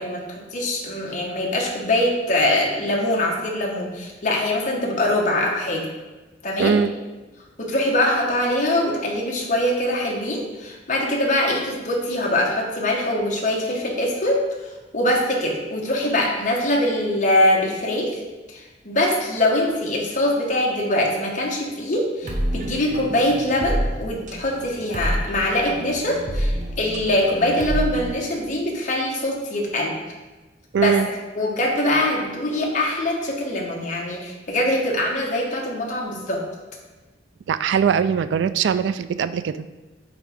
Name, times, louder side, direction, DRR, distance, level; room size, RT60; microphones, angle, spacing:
voice 1, 0.0-5.9 6.4-6.8 7.6-14.4 14.9-18.1 18.5-29.9 30.8-36.4, left 1 dB, 45° left, -1 dB, 1.2 m, -23 dB
voice 2, 6.6-6.9 30.7-31.1 37.5-39.7, right 7 dB, 80° right, 13 dB, 0.3 m, -21 dB
sound 1, 22.2-28.2, equal, 45° right, 0.7 m, -28 dB
8.8 x 3.6 x 3.5 m, 1.2 s
head